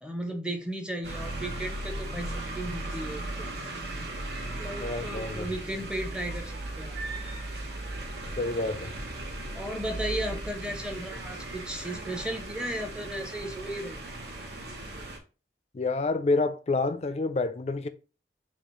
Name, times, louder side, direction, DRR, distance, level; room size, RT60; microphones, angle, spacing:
voice 1, 0.0-3.5 4.6-7.0 9.5-14.0, right 1 dB, 5° right, 0.6 m, -35 dB
sound 1, 1.0-15.2, right 1 dB, 75° right, 1.0 m, -37 dB
voice 2, 4.8-5.5 8.4-9.0 15.7-17.9, left 3 dB, 35° left, 0.4 m, -28 dB
6.9 x 2.4 x 3.0 m
head